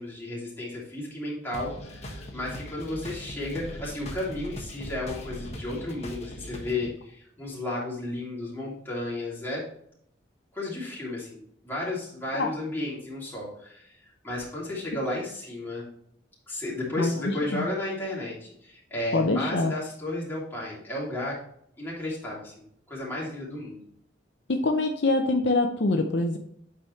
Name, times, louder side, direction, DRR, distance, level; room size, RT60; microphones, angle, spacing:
voice 1, 0.0-9.7 10.5-14.0 14.2-15.9 16.5-21.4 21.8-23.8, left 1 dB, 10° left, -6 dB, 2.8 m, -33 dB
sound 1, 1.5-6.9, equal, 35° left, 1.3 m, -40 dB
voice 2, 17.0-17.7 19.1-19.7 24.5-26.4, left 2 dB, 60° left, 4 dB, 0.6 m, -25 dB
8.4 x 4.9 x 3.2 m, 0.67 s
head